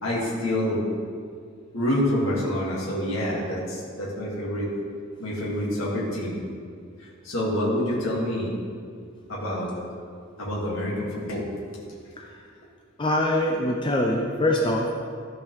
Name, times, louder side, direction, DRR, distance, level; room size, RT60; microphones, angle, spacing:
voice 1, 0.0-0.8 1.7-4.7 5.2-6.4 7.2-8.5 9.3-9.7 10.4-11.4, left 1 dB, 80° left, -5 dB, 2.0 m, -27 dB
voice 2, 13.0-14.9, left 1 dB, 25° left, 0 dB, 0.5 m, -23 dB
14.0 x 5.2 x 3.2 m, 2.2 s
head